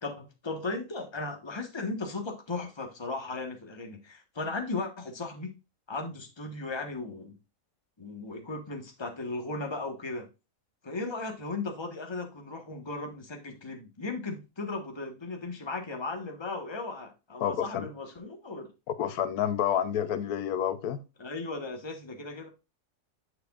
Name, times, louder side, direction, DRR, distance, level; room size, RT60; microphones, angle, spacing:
voice 1, 0.0-5.6 5.9-7.4 8.0-10.3 10.8-18.7 21.2-22.5, left 3 dB, 20° left, 1.2 m, -36 dB
voice 2, 17.4-17.9 19.0-21.0, left 9 dB, 85° left, 1.2 m, -29 dB
8.0 x 6.6 x 2.4 m
omnidirectional pair, 1.5 m